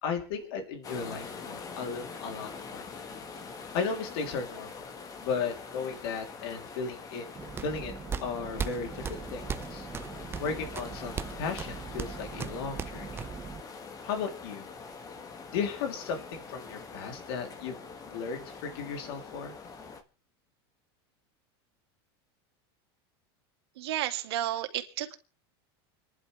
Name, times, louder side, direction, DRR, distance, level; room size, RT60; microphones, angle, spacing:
voice 1, 0.0-2.9 3.7-4.7 5.2-7.3 7.6-7.9 8.2-9.4 9.7-9.9 10.4-13.2 14.0-14.7 15.5-17.8 18.0-19.5, left 5 dB, 70° left, 4 dB, 3.3 m, -35 dB
sound 1, 0.8-20.0, left 4 dB, 25° left, 1.6 m, -44 dB
sound 2, 7.3-13.6, right 6 dB, 20° right, 0.7 m, -38 dB
voice 2, 23.8-25.1, right 13 dB, 85° right, 6 dB, 2.3 m, -32 dB
29.0 x 11.0 x 3.4 m, 0.37 s
supercardioid pair, 135°, 13 cm